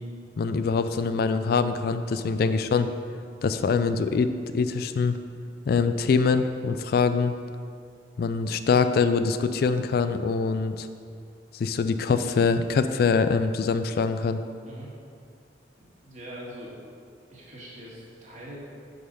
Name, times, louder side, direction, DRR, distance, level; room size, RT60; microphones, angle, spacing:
voice 1, 0.4-2.9 3.4-5.2 5.7-7.4 8.2-10.9 11.5-14.4, left 5 dB, 55° left, 10 dB, 0.3 m, -24 dB
voice 2, 16.0-16.7 17.3-18.6, equal, 40° right, -5 dB, 1.8 m, -42 dB
6.8 x 5.5 x 5.3 m, 2.3 s
head